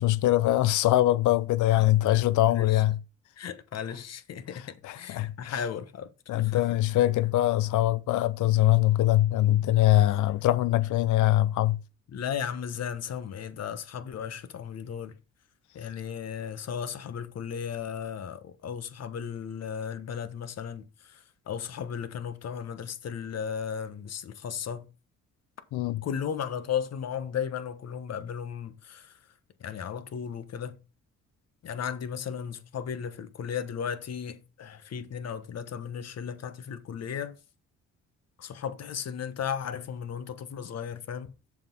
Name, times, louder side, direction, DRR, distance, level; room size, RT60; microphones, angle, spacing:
voice 1, 0.0-3.0 4.8-5.6 6.3-11.8 25.7-26.0, left 15 dB, 75° left, 0.7 m, -23 dB
voice 2, 1.8-2.8 3.4-6.1 6.4-6.6 12.1-15.2 15.7-24.9 26.0-29.2 29.6-30.8 31.6-37.4 38.4-41.3, left 7 dB, 55° left, 1.2 m, -35 dB
7.0 x 5.9 x 5.3 m
cardioid pair, 90°, 30 cm